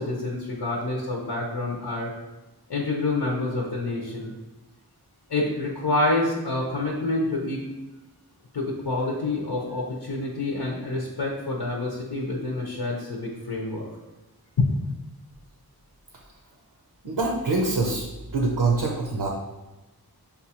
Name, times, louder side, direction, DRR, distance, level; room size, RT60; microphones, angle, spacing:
voice 1, 0.0-2.1 2.7-4.3 5.3-7.6 8.5-13.9 14.6-14.7, left 2 dB, 80° left, -2 dB, 0.7 m, -27 dB
voice 2, 17.0-18.1 18.3-19.3, right 3 dB, 75° right, 0 dB, 0.7 m, -24 dB
6.7 x 2.3 x 2.8 m, 1.1 s
wide cardioid pair, 55°, 39 cm